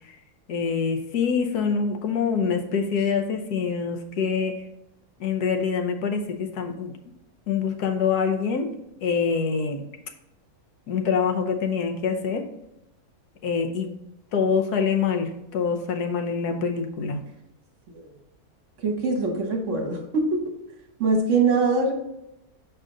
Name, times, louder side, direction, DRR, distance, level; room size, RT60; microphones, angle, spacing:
voice 1, 0.5-4.6 5.2-6.9 7.5-8.7 9.0-9.8 10.9-12.4 13.4-13.9 14.3-17.2, left 6 dB, 85° left, 5 dB, 1.3 m, -25 dB
voice 2, 18.8-20.5 21.0-21.9, right 3 dB, 55° right, 3 dB, 1.3 m, -23 dB
6.4 x 5.0 x 3.8 m, 0.87 s
omnidirectional pair, 1.6 m